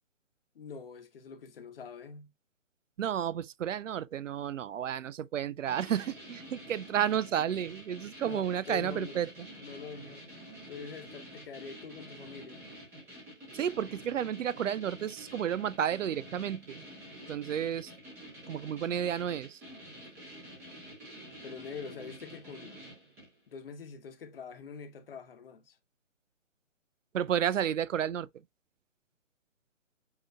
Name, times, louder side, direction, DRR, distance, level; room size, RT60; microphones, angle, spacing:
voice 1, 0.5-2.3 8.2-9.2 9.6-12.6 21.4-22.8 23.5-25.8, left 5 dB, 45° left, 1.1 m, -45 dB
voice 2, 3.0-9.3 13.5-16.8 17.3-17.9 18.5-19.6 27.1-28.3, right 9 dB, 75° right, 0.5 m, -32 dB
sound 1, 5.7-23.4, equal, 5° right, 0.8 m, -49 dB
8.0 x 2.9 x 2.3 m
hypercardioid pair, 155°, 38 cm